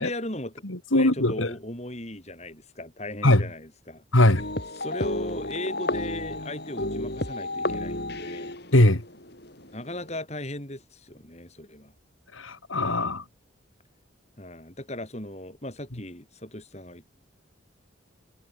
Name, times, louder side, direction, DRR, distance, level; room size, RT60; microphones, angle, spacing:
voice 1, 0.0-0.6 0.9-4.0 4.8-8.6 9.7-11.9 14.4-17.1, left 1 dB, 35° left, 7.3 m, -37 dB
voice 2, 0.6-1.5 3.2-3.4 4.1-4.4 8.7-9.0 12.3-13.2, left 1 dB, 80° left, 3.2 m, -21 dB
sound 1, 4.4-10.2, left 1 dB, 55° left, 6.9 m, -32 dB
head